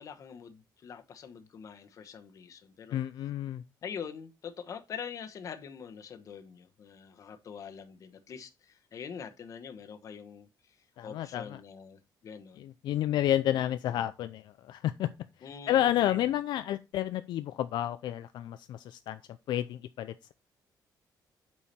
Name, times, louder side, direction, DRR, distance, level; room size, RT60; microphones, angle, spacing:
voice 1, 0.0-3.0 3.8-10.8 11.0-12.7 15.4-16.2, left 7 dB, 45° left, 1.1 m, -44 dB
voice 2, 2.9-3.6 11.0-11.6 12.6-15.1 15.7-19.2 19.5-20.3, left 12 dB, 75° left, 0.4 m, -30 dB
8.6 x 4.7 x 4.3 m
cardioid pair, 165°, 8 cm